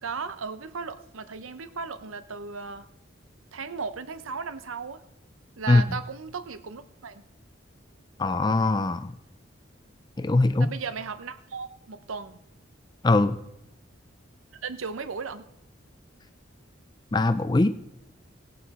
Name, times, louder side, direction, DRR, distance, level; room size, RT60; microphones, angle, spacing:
voice 1, 0.0-2.9 3.5-5.0 5.6-7.2 10.6-12.4 14.6-15.4, right 5 dB, 90° right, 11 dB, 0.7 m, -36 dB
voice 2, 8.2-9.1 10.2-10.7 13.0-13.4 17.1-17.7, left 2 dB, 20° left, 12 dB, 0.4 m, -21 dB
17.0 x 8.4 x 4.2 m, 0.82 s
head